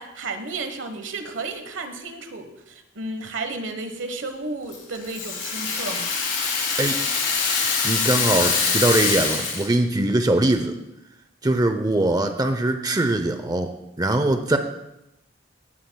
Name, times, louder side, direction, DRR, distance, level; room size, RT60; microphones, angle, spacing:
voice 1, 0.0-6.1, right 3 dB, 80° right, 7 dB, 1.2 m, -33 dB
Rattle (instrument), 4.7-9.8, left 5 dB, 75° left, 3.8 m, -24 dB
voice 2, 7.8-10.8 11.4-14.6, right 2 dB, 20° right, 7 dB, 0.6 m, -22 dB
17.0 x 11.0 x 2.3 m, 0.87 s
head